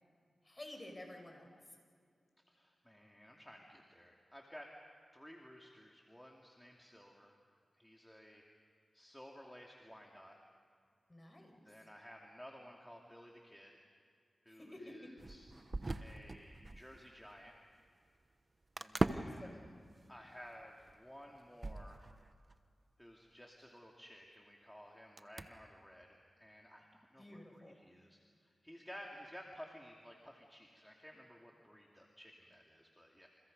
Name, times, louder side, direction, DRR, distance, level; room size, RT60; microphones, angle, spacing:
voice 1, 0.4-1.5 11.1-11.6 14.5-15.1 19.0-19.6 27.2-27.8, left 1 dB, 25° left, 3 dB, 5.8 m, -52 dB
voice 2, 2.5-4.7 5.1-7.3 7.8-8.4 8.9-10.4 11.6-13.8 14.4-15.5 16.0-17.5 18.8-19.5 20.1-22.0 23.0-33.3, equal, 5° left, -1 dB, 2.6 m, -55 dB
sound 1, 15.2-17.0 17.3-17.4 18.8-19.5 20.0-20.1 20.4-22.5 23.4-23.5 25.2-25.5, right 2 dB, 35° right, 1.0 m, -39 dB
29.0 x 29.0 x 5.4 m, 2.2 s
wide cardioid pair, 70°, 0 cm